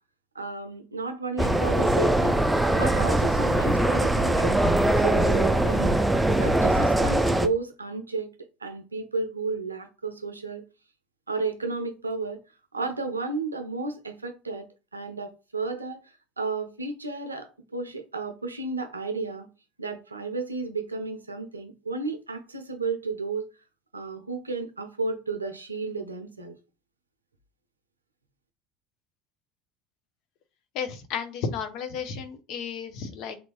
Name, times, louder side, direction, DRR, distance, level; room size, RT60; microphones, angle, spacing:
voice 1, 0.3-2.4 2.7-4.6 5.0-6.0 6.4-8.3 8.6-10.6 11.3-12.4 12.7-14.7 14.9-16.0 16.4-19.5 19.8-23.5 23.9-26.6, right 3 dB, 85° right, 0.5 m, -32 dB
sound 1, 1.4-7.5, right 1 dB, 5° right, 0.4 m, -22 dB
voice 2, 30.7-33.4, left 6 dB, 55° left, 0.7 m, -33 dB
3.4 x 2.5 x 3.0 m
figure-of-eight pair, 65°, 0 cm